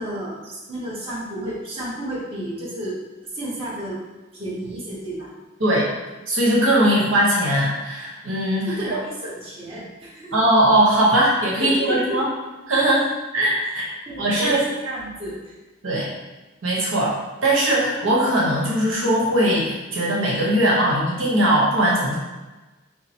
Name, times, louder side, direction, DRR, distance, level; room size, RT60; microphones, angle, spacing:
voice 1, 0.0-4.0 4.3-5.3 8.7-10.4 11.6-12.3 14.1-15.5, right 1 dB, 30° right, -7 dB, 0.9 m, -31 dB
voice 2, 6.3-9.0 10.3-12.3 12.7-13.9 14.2-14.6 15.8-16.1 16.6-17.1 17.4-22.2, right 1 dB, 90° right, -4 dB, 1.0 m, -20 dB
4.3 x 2.0 x 4.2 m, 1.2 s
head